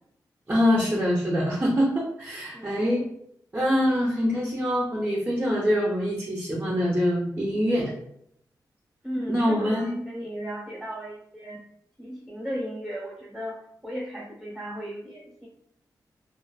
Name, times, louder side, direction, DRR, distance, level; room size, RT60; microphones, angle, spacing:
voice 1, 0.5-3.1 3.5-7.9 9.3-10.0, equal, 25° right, -4 dB, 0.5 m, -24 dB
voice 2, 2.5-2.8 9.0-11.6 12.0-15.5, equal, 5° right, -6 dB, 0.8 m, -36 dB
2.4 x 2.3 x 2.2 m, 0.73 s
wide cardioid pair, 100°, 7 cm